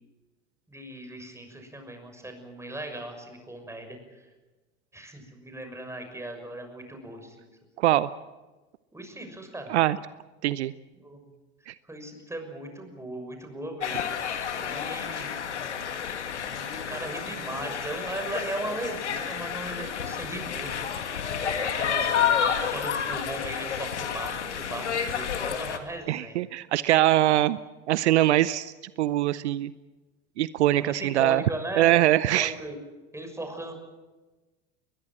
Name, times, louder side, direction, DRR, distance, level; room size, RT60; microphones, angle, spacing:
voice 1, 0.7-4.0 4.9-7.5 8.9-9.8 11.0-11.2 11.8-15.3 16.5-20.9 21.6-26.4 30.8-32.8 33.1-33.7, right 1 dB, 10° right, 5 dB, 6.4 m, -38 dB
voice 2, 7.8-8.1 9.7-10.0 10.4-10.7 11.7-11.8 26.1-27.6 27.9-29.7 30.4-31.4 31.7-32.5, right 14 dB, 75° right, 17 dB, 0.7 m, -23 dB
sound 1, 13.8-25.8, left 8 dB, 85° left, 2.0 m, -30 dB
21.5 x 21.5 x 7.7 m, 1.2 s
hypercardioid pair, 80°, 34 cm